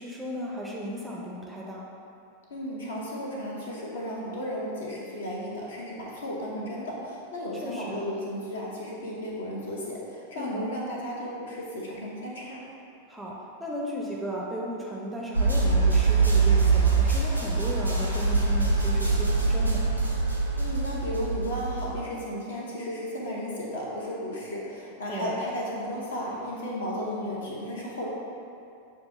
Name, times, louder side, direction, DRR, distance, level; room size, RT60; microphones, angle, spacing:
voice 1, 0.0-1.8 7.6-8.0 10.3-10.7 13.1-19.8 25.1-25.4, equal, 5° right, -4 dB, 0.5 m, -35 dB
voice 2, 2.5-12.6 20.6-28.1, equal, 65° left, -3 dB, 0.7 m, -34 dB
sound 1, 15.3-22.0, right 4 dB, 90° right, 0.4 m, -23 dB
6.4 x 2.3 x 2.7 m, 2.6 s
figure-of-eight pair, 90°, 0 cm